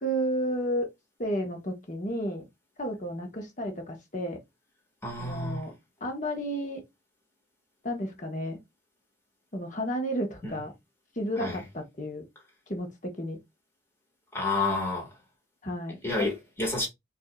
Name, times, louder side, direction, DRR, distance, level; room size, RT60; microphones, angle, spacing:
voice 1, 0.0-0.9 1.2-2.4 2.8-4.4 5.2-5.7 6.0-6.8 7.8-8.6 9.5-10.7 11.2-12.2 12.7-13.4 15.6-16.3, equal, 40° left, 1.1 m, -32 dB
voice 2, 5.0-5.7 10.4-10.6 11.4-11.6 14.3-15.1 16.0-16.9, left 2 dB, 15° left, 1.6 m, -30 dB
5.3 x 2.7 x 2.3 m
head